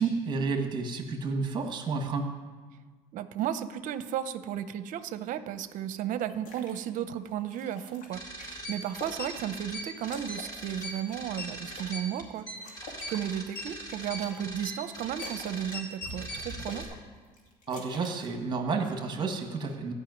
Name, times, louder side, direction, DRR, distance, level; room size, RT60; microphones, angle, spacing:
voice 1, 0.0-2.3 17.7-19.9, right 4 dB, 25° right, 4 dB, 1.5 m, -30 dB
voice 2, 3.1-16.9, right 10 dB, 50° right, 12 dB, 0.7 m, -34 dB
sound 1, 6.3-6.8 7.2-9.7 10.0-12.0 12.3-14.5 14.8-15.8 16.1-17.0 17.2-18.4, left 2 dB, 90° left, 2.4 m, -48 dB
sound 2, 8.1-16.8, equal, 25° left, 3.5 m, -40 dB
13.5 x 5.6 x 9.3 m, 1.4 s
cardioid pair, 140°, 17 cm